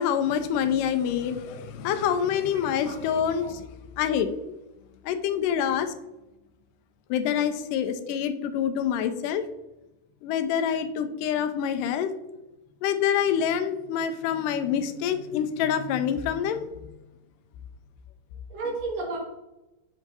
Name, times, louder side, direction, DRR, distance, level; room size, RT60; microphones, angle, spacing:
voice 1, 0.0-3.5 4.0-4.3 5.0-5.9 7.1-9.4 10.2-12.1 12.8-16.7, left 8 dB, 85° left, 8 dB, 2.1 m, -26 dB
voice 2, 2.3-3.1 3.4-3.5 5.6-5.9 8.0-8.5 8.8-8.9 13.9-14.0 15.3-15.4 18.5-19.2, right 2 dB, 85° right, -9 dB, 3.7 m, -36 dB
7.7 x 3.5 x 4.0 m, 0.96 s
omnidirectional pair, 3.8 m